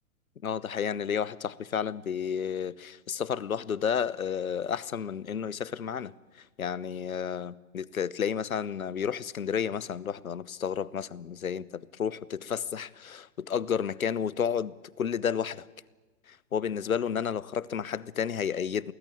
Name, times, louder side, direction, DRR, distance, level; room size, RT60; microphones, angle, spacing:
voice 1, 0.4-6.1 6.6-15.6 16.3-18.9, left 7 dB, 75° left, 1.1 m, -31 dB
29.0 x 19.5 x 8.7 m
figure-of-eight pair, 110°, 43 cm